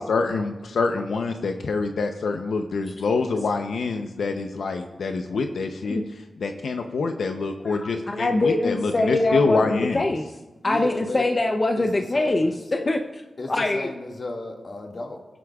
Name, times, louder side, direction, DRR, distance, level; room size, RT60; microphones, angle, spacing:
voice 1, 0.0-6.0 6.4-10.0, left 4 dB, 85° left, 5 dB, 0.7 m, -26 dB
voice 2, 7.6-10.2 10.6-13.2 13.5-13.9, left 2 dB, 35° left, 4 dB, 0.7 m, -23 dB
voice 3, 10.6-11.3 11.8-12.6 13.4-15.2, left 2 dB, 50° left, 1 dB, 1.9 m, -34 dB
22.5 x 9.9 x 2.4 m, 1.1 s
cardioid pair, 75°, 0 cm